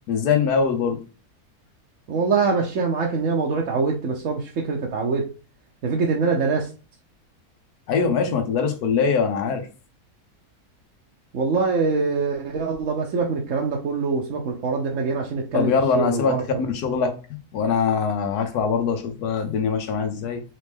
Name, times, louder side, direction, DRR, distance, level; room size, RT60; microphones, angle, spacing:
voice 1, 0.1-1.0 7.9-9.6 15.5-17.1 17.5-20.4, left 5 dB, 80° left, 6 dB, 1.4 m, -22 dB
voice 2, 2.1-5.3 5.8-6.7 11.3-16.6, right 4 dB, 60° right, -1 dB, 1.0 m, -24 dB
4.1 x 3.3 x 3.5 m, 0.35 s
omnidirectional pair, 1.6 m